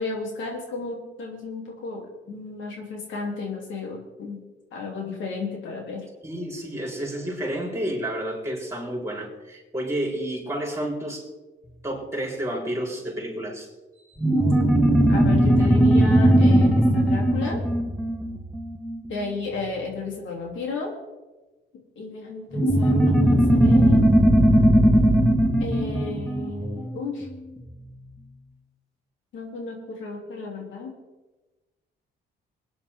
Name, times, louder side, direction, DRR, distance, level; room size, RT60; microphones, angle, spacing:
voice 1, 0.0-4.4 4.7-6.1 14.5-14.8 15.1-17.6 19.1-20.9 21.9-24.1 25.6-27.3 29.3-30.9, left 4 dB, 75° left, 0 dB, 3.5 m, -33 dB
voice 2, 6.2-11.2 11.8-13.7 13.9-14.2, right 1 dB, 15° right, -1 dB, 4.8 m, -30 dB
sound 1, 14.2-19.2 22.5-27.4, right 1 dB, ahead, 1.9 m, -19 dB
21.0 x 10.0 x 3.8 m, 1.1 s
cardioid pair, 90°, 20 cm